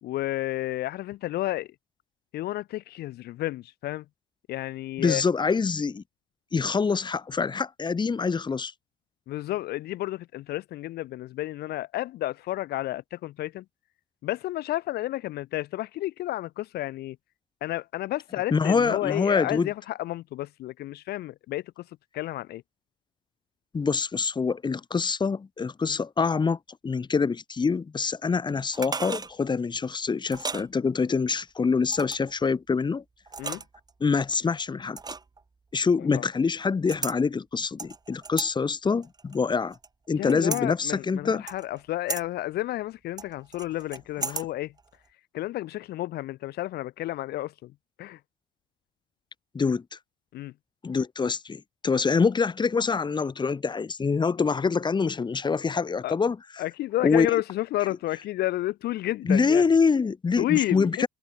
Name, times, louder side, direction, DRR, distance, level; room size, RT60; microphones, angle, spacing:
voice 1, 0.0-1.7 2.3-4.0 4.5-5.2 9.3-13.6 14.2-17.2 17.6-21.9 22.1-22.6 25.8-26.0 33.4-33.6 36.1-36.2 40.1-44.7 45.3-47.7 48.0-48.2 50.3-50.5 56.0-56.2 56.6-59.6 60.4-61.1, left 15 dB, 70° left, 0.9 m, -31 dB
voice 2, 5.0-6.0 6.5-8.7 18.5-19.7 23.7-26.6 26.8-33.0 34.0-35.0 35.7-39.7 40.1-41.4 44.3-44.4 49.5-49.8 50.8-56.4 57.0-57.3 59.3-61.1, left 5 dB, 25° left, 2.4 m, -25 dB
sound 1, 28.7-29.3 30.3-30.7 31.9-32.3 33.3-33.9 35.0-35.4 36.9-37.2 37.8-38.5 39.0-39.9 40.3-40.6 41.5-41.8 42.1-42.2 43.2-44.5 44.8-44.9, right 4 dB, 25° right, 4.3 m, -34 dB
cardioid pair, 110°, 17 cm